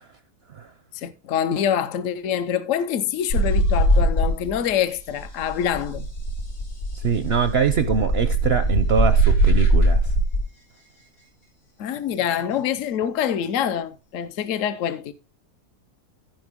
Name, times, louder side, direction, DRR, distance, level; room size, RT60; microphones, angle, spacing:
voice 1, 0.9-6.1 11.8-15.1, left 9 dB, 60° left, 1.0 m, -25 dB
sound 1, 3.3-4.7 5.0-10.4 12.2-12.6, right 1 dB, 85° left, 3.0 m, -20 dB
voice 2, 6.9-10.0, right 6 dB, 55° right, 0.7 m, -23 dB
15.0 x 5.1 x 3.6 m
omnidirectional pair, 1.6 m